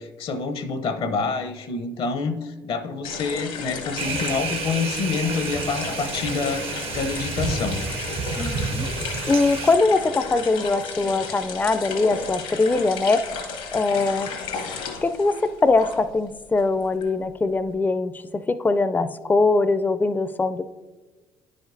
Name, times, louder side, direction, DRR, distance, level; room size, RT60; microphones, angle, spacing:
voice 1, 0.0-7.8, left 4 dB, 65° left, 9 dB, 0.7 m, -27 dB
sound 1, 3.0-16.2 16.5-17.7, left 5 dB, 80° left, 1.2 m, -34 dB
sound 2, 4.0-9.8, right 5 dB, 65° right, 0.7 m, -30 dB
voice 2, 8.4-8.9 9.2-13.2 13.7-14.3 15.0-20.6, left 3 dB, 15° left, 11 dB, 0.4 m, -22 dB
10.0 x 5.1 x 2.6 m, 1.3 s
hypercardioid pair, 55°, 10 cm